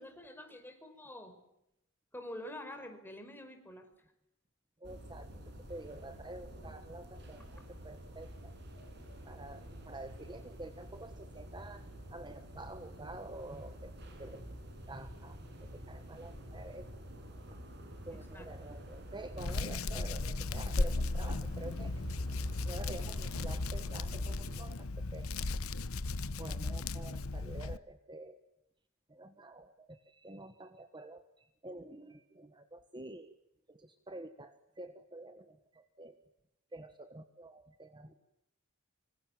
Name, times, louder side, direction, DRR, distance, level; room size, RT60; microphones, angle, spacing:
voice 1, 0.0-1.4 2.1-3.9 18.1-18.5 19.5-19.6, left 1 dB, 10° left, 6 dB, 5.0 m, -47 dB
voice 2, 4.8-5.3 5.7-8.5 9.2-11.8 12.1-13.9 14.2-14.5 14.9-15.4 15.7-16.9 18.1-22.0 22.6-25.3 26.4-28.4 29.1-31.2 31.6-33.4 33.7-36.2 36.7-38.2, right 2 dB, 20° right, 9 dB, 1.4 m, -48 dB
sound 1, 4.8-24.6, equal, 55° right, 7.3 m, -48 dB
Hands, 19.4-27.8, left 2 dB, 85° left, 1.0 m, -36 dB
26.0 x 25.5 x 7.5 m, 0.85 s
head